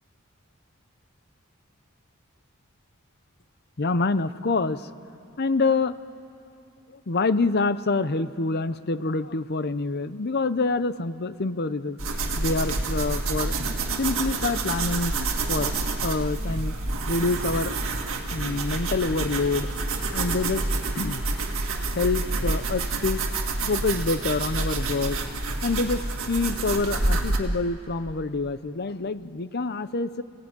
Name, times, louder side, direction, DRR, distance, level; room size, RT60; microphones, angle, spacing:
voice 1, 3.8-4.9 5.4-6.0 6.9-13.6 14.0-15.2 15.5-15.7 16.0-16.8 17.1-17.7 18.3-19.7 20.1-20.6 20.9-21.2 21.9-25.2 25.6-30.2, left 3 dB, 50° left, 14 dB, 0.7 m, -26 dB
sound 1, 12.0-27.4, right 3 dB, 70° right, 2.0 m, -28 dB
29.0 x 17.0 x 9.6 m, 2.5 s
head